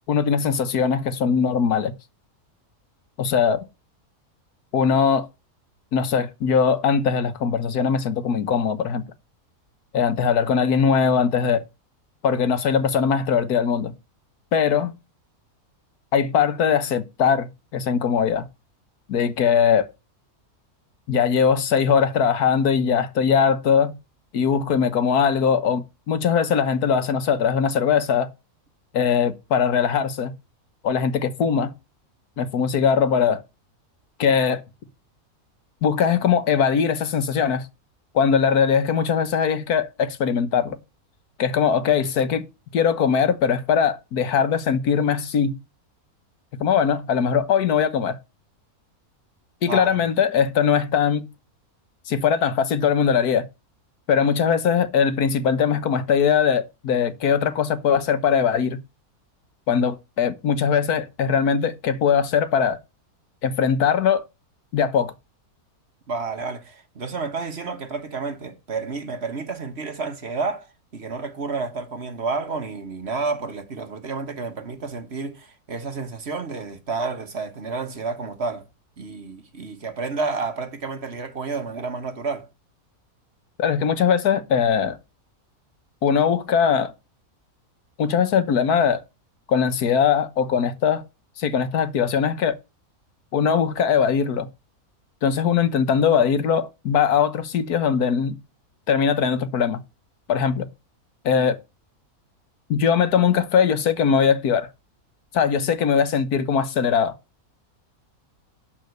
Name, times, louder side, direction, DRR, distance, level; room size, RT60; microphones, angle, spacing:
voice 1, 0.1-1.9 3.2-3.6 4.7-5.3 5.9-9.0 9.9-11.6 12.2-13.9 14.5-14.9 16.1-18.4 19.1-19.9 21.1-23.9 24.3-28.3 28.9-30.3 30.8-31.7 32.4-33.4 34.2-34.6 35.8-37.7 38.1-40.8 41.4-42.4 42.7-45.6 46.6-48.2 49.6-51.3 52.1-53.5 54.1-58.8 59.7-62.8 63.4-64.2 64.7-65.1 83.6-85.0 86.0-86.9 88.0-89.0 89.5-91.0 91.4-92.6 93.3-94.5 95.2-98.4 98.9-99.8 100.3-100.6 101.2-101.6 102.7-104.7 105.3-107.1, left 7 dB, 85° left, 1.6 m, -20 dB
voice 2, 66.1-70.7 70.9-78.6 79.0-82.5, right 4 dB, 45° right, 1.6 m, -30 dB
11.5 x 4.3 x 7.8 m
omnidirectional pair, 1.6 m